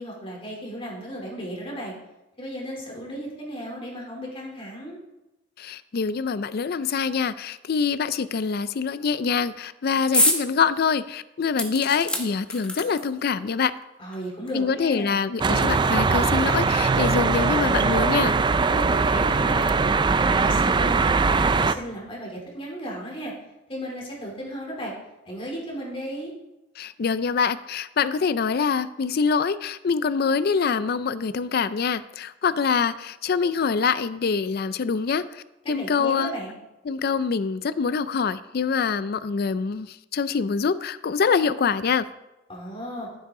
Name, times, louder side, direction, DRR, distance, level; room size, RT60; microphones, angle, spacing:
voice 1, 0.0-1.9 2.4-5.0 14.0-15.2 18.7-19.8 20.2-21.0 21.3-23.3 23.7-24.9 25.2-26.3 35.8-36.5 42.5-43.1, equal, 30° left, -2 dB, 3.1 m, -35 dB
voice 2, 5.6-13.7 14.5-18.4 26.8-36.3 36.9-42.1, left 5 dB, 55° left, 15 dB, 0.4 m, -25 dB
sound 1, 10.1-10.4 10.8-10.9 11.6-13.2 14.1-14.2 14.5-14.6, left 1 dB, 5° left, 1.5 m, -25 dB
sound 2, 15.4-21.7, right 4 dB, 25° right, 0.4 m, -21 dB
14.5 x 8.2 x 3.8 m, 0.96 s
head